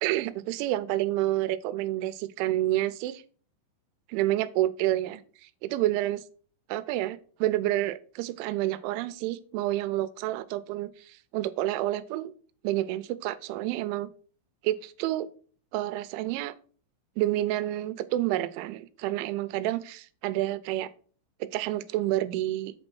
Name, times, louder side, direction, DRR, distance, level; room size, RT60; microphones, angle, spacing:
voice 1, 0.0-3.2 4.1-6.2 6.7-12.3 12.6-14.1 14.6-15.3 15.7-16.5 17.2-20.9 21.5-22.7, right 15 dB, 90° right, 15 dB, 3.1 m, -29 dB
8.2 x 4.3 x 6.1 m, 0.42 s
omnidirectional pair, 5.3 m